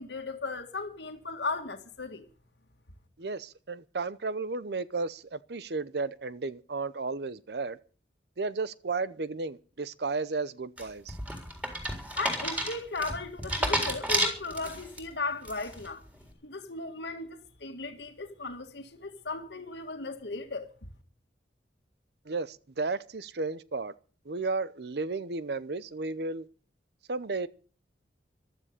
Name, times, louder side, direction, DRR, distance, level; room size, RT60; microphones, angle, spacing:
voice 1, 0.0-2.3 12.2-16.0 16.4-20.9, left 3 dB, 75° left, 1.8 m, -36 dB
voice 2, 3.2-7.8 8.4-11.2 22.3-23.9 24.3-26.5 27.1-27.5, right 3 dB, 65° right, 0.7 m, -33 dB
sound 1, 10.8-15.0 15.4-15.9, equal, 10° right, 3.9 m, -31 dB
15.0 x 12.5 x 6.7 m
head